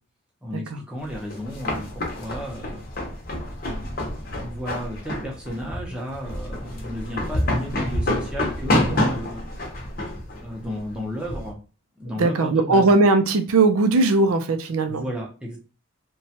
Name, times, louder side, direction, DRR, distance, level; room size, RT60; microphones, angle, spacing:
voice 1, 0.4-2.8 3.6-9.5 10.4-11.6 12.0-12.9 14.9-15.6, equal, 5° right, -2 dB, 0.6 m, -33 dB
sound 1, 1.1-11.5, left 1 dB, 45° left, 0.7 m, -28 dB
voice 2, 12.2-15.1, right 3 dB, 85° right, 7 dB, 0.5 m, -19 dB
2.9 x 2.2 x 2.8 m, 0.34 s
head